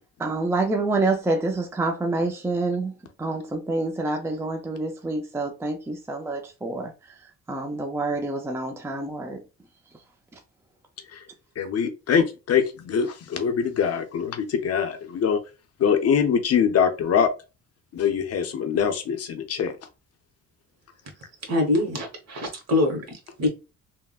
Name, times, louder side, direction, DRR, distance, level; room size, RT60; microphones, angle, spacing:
voice 1, 0.2-2.9 3.2-6.9 7.5-9.4, right 2 dB, 10° right, 0.4 m, -27 dB
voice 2, 11.6-15.4 15.8-17.3 17.9-19.7, left 7 dB, 55° left, 0.6 m, -23 dB
voice 3, 21.5-23.5, left 2 dB, 55° right, 1.2 m, -24 dB
3.4 x 2.1 x 2.3 m
cardioid pair, 90°, 30 cm